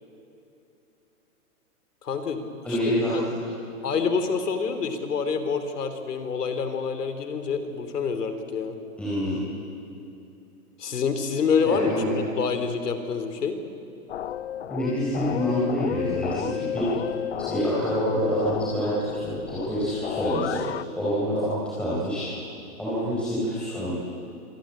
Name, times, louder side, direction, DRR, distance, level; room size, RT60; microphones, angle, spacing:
voice 1, 2.0-3.2 3.8-8.8 10.8-11.9 12.4-13.6, left 5 dB, 90° left, 8 dB, 3.3 m, -27 dB
voice 2, 2.6-3.2 9.0-9.4 11.6-12.2 14.7-16.9 17.5-20.6 21.0-22.3 22.8-24.0, equal, ahead, -10 dB, 4.6 m, -26 dB
sound 1, 14.1-20.8, left 10 dB, 45° left, 0.6 m, -33 dB
25.5 x 19.0 x 8.6 m, 2.7 s
hypercardioid pair, 165°, 46 cm